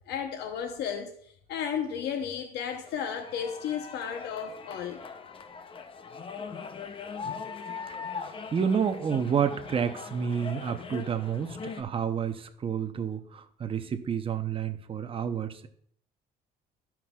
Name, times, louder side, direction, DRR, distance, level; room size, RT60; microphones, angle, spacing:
voice 1, 0.1-5.0, left 8 dB, 80° left, 0.8 m, -34 dB
sound 1, 2.7-11.8, left 5 dB, 30° left, 0.6 m, -41 dB
voice 2, 8.1-15.7, right 7 dB, 35° right, 0.7 m, -30 dB
13.0 x 5.8 x 2.3 m
cardioid pair, 110°, 17 cm